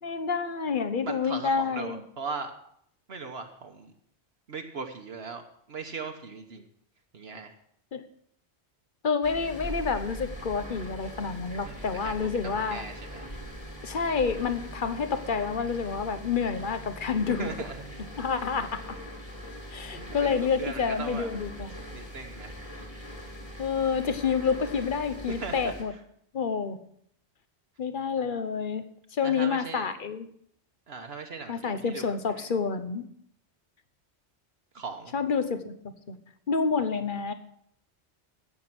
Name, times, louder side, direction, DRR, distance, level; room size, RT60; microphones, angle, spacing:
voice 1, 0.0-2.0 7.9-8.0 9.0-12.8 13.8-17.5 18.2-19.0 19.7-21.8 23.6-25.9 26.3-26.8 27.8-28.9 29.1-30.3 31.5-33.0 35.1-36.2 36.5-37.3, left 5 dB, 50° left, 10 dB, 1.1 m, -28 dB
voice 2, 1.0-2.5 3.1-3.9 4.5-6.6 7.1-7.5 11.7-13.3 17.4-18.0 20.0-21.3 21.9-22.6 25.4-25.7 29.2-29.9 30.9-32.5 34.7-35.1, right 4 dB, 65° right, 4 dB, 1.3 m, -39 dB
Refrigerator from inside, 9.2-25.8, equal, 25° left, 3.1 m, -41 dB
16.0 x 7.0 x 6.0 m, 0.68 s
omnidirectional pair, 1.2 m